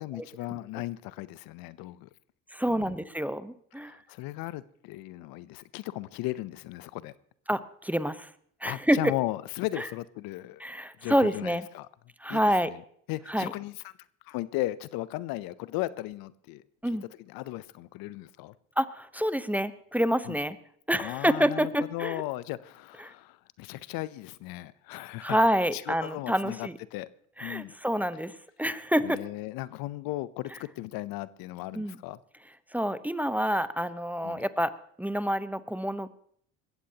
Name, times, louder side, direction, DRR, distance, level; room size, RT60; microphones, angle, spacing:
voice 1, 0.0-2.1 2.7-3.0 3.8-7.1 8.7-10.6 11.0-11.9 12.3-12.8 13.1-13.9 14.2-16.6 17.3-18.5 20.2-20.4 21.0-25.4 25.7-27.1 27.4-27.7 29.0-32.2 34.2-34.4, left 17 dB, 70° left, 0.7 m, -36 dB
voice 2, 2.5-3.9 7.5-8.3 8.6-9.1 9.8-9.9 10.6-11.6 12.2-12.7 13.3-13.5 16.8-17.0 18.8-20.6 20.9-22.2 23.0-23.1 25.2-26.8 27.4-28.3 28.6-29.2 31.7-32.0 32.7-34.7 35.0-36.1, equal, 5° right, 0.8 m, -27 dB
20.5 x 15.0 x 2.9 m
supercardioid pair, 70°, 36 cm